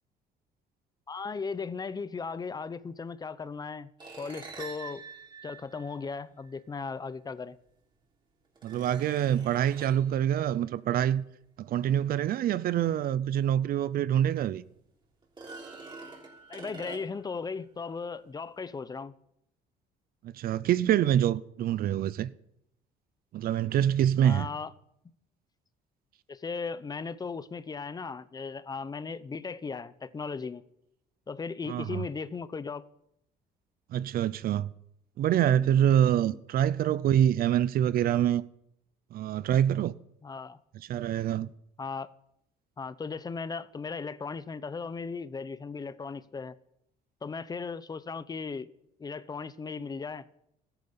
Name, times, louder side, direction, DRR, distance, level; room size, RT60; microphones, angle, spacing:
voice 1, 1.1-3.9 4.2-5.0 5.4-7.6 16.5-19.1 24.2-24.7 26.3-30.6 31.3-32.8 35.6-35.8 36.2-36.4 40.2-40.6 41.8-42.1 42.8-46.5 47.2-48.7 49.0-50.2, left 5 dB, 25° left, 0.7 m, -37 dB
sound 1, 4.0-6.5 7.7-7.8 8.5-10.1 13.4-13.5 13.9-14.0 15.2-17.4, right 4 dB, 30° right, 3.5 m, -46 dB
voice 2, 8.6-11.2 11.6-14.6 20.2-22.3 23.3-24.5 31.7-32.0 33.9-34.7 35.2-38.4 39.1-39.9 40.7-41.5, right 10 dB, 60° right, 0.6 m, -26 dB
13.5 x 11.0 x 7.0 m
cardioid pair, 110°, 17 cm